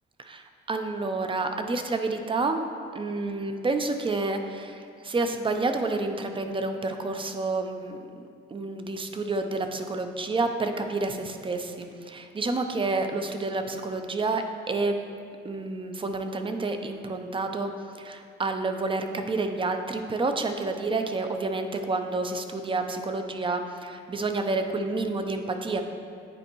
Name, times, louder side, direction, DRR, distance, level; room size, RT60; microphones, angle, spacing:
voice 1, 0.2-2.6 2.9-8.0 8.5-15.0 15.4-17.7 18.0-25.8, right 3 dB, 25° right, 6 dB, 0.6 m, -29 dB
9.7 x 4.3 x 3.0 m, 2.3 s
cardioid pair, 90°, 20 cm